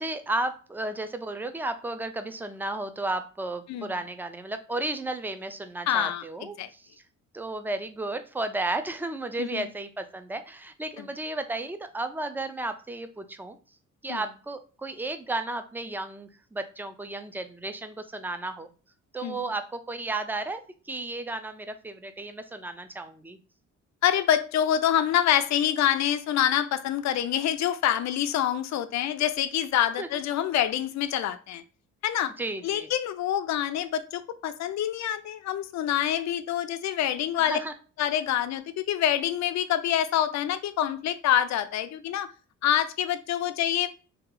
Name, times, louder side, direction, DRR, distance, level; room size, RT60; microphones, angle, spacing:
voice 1, 0.0-6.8 7.3-13.6 14.0-18.7 19.1-20.6 20.9-23.4 30.0-30.1 32.4-32.9 37.5-37.7, right 2 dB, 5° right, 0.4 m, -33 dB
voice 2, 5.9-6.2 6.6-6.7 9.4-9.7 11.0-11.1 14.1-14.2 19.2-19.5 24.0-31.6 32.0-32.3 32.6-37.6 38.0-42.3 42.6-43.9, left 10 dB, 65° left, 0.4 m, -26 dB
2.8 x 2.3 x 3.8 m
cardioid pair, 90°, 30 cm